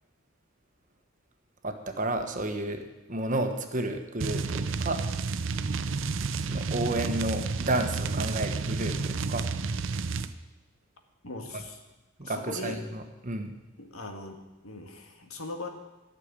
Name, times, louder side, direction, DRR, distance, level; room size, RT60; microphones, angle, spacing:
voice 1, 1.6-5.0 6.4-9.5 11.5-11.6 12.2-13.5, right 1 dB, 35° right, 6 dB, 1.3 m, -31 dB
sound 1, 4.2-10.3, right 4 dB, 65° right, 0.6 m, -31 dB
voice 2, 11.2-11.8 12.2-12.8 13.8-14.4 14.6-15.7, left 2 dB, 80° left, 4 dB, 1.8 m, -39 dB
13.5 x 6.8 x 9.8 m, 1.1 s
head